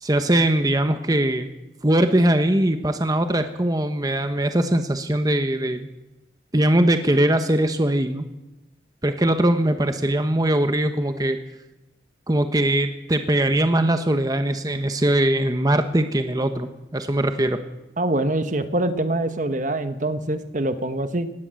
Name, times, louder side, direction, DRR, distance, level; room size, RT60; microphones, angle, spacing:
voice 1, 0.0-1.5 1.8-5.9 6.5-8.3 9.0-11.4 12.3-17.6, right 1 dB, 20° right, 8 dB, 1.1 m, -21 dB
voice 2, 18.0-21.3, right 1 dB, 45° right, 10 dB, 1.3 m, -24 dB
20.0 x 17.0 x 7.7 m, 0.96 s
head